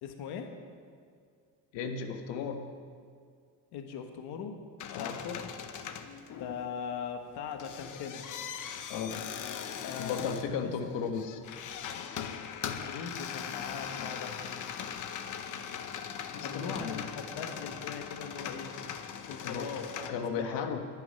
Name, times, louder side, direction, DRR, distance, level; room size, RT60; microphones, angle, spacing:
voice 1, 0.0-0.5 3.7-4.6 4.9-5.5 6.4-8.3 9.8-10.7 12.6-14.4 16.4-18.7 19.2-20.8, left 6 dB, 65° left, 5 dB, 1.5 m, -40 dB
voice 2, 1.7-2.7 4.9-5.4 8.9-9.3 10.0-11.4 16.3-17.1 19.4-19.7 20.1-20.8, left 6 dB, 90° left, 4 dB, 1.5 m, -35 dB
sound 1, 4.8-6.8 7.3-20.1, left 8 dB, 45° left, 1.0 m, -40 dB
11.5 x 11.0 x 9.8 m, 2.1 s
cardioid pair, 170°, 42 cm